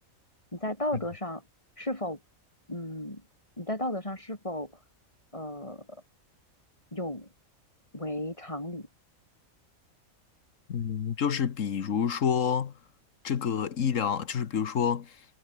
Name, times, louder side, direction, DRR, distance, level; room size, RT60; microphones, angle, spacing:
voice 1, 0.5-1.4 1.8-2.2 2.7-3.2 3.6-4.7 5.3-6.0 6.9-7.3 7.9-8.9, left 1 dB, 20° left, 4.0 m, -34 dB
voice 2, 10.7-12.8 13.2-15.2, left 7 dB, 65° left, 1.5 m, -28 dB
omnidirectional pair, 1.5 m